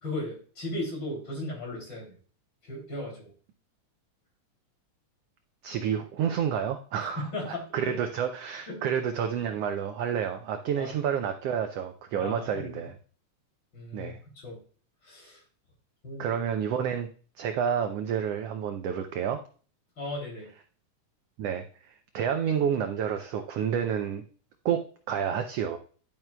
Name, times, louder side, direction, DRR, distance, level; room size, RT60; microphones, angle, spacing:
voice 1, 0.0-2.2 2.6-3.3 7.0-8.0 8.7-8.8 10.8-10.9 12.2-12.9 13.7-14.6 15.0-15.4 16.0-16.4 20.0-20.5, left 1 dB, 35° left, 0 dB, 3.5 m, -36 dB
voice 2, 5.6-12.9 13.9-14.2 16.2-17.1 17.4-19.4 21.4-24.2 24.6-25.8, right 8 dB, 80° right, 6 dB, 1.4 m, -29 dB
10.5 x 8.8 x 2.2 m, 0.41 s
omnidirectional pair, 3.5 m